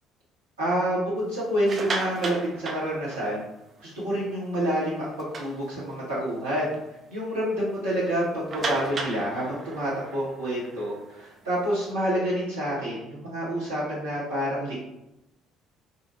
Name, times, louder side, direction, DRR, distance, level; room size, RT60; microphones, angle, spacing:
voice 1, 0.6-3.5 3.8-6.8 7.1-14.8, equal, 75° right, -8 dB, 0.7 m, -28 dB
sound 1, 1.5-3.6 4.1-4.3 4.6-4.7 5.1-6.1 6.6-6.7 7.1-7.2 8.5-11.8, right 3 dB, 35° right, 0.4 m, -35 dB
3.5 x 2.0 x 3.0 m, 0.88 s
figure-of-eight pair, 50°, 0 cm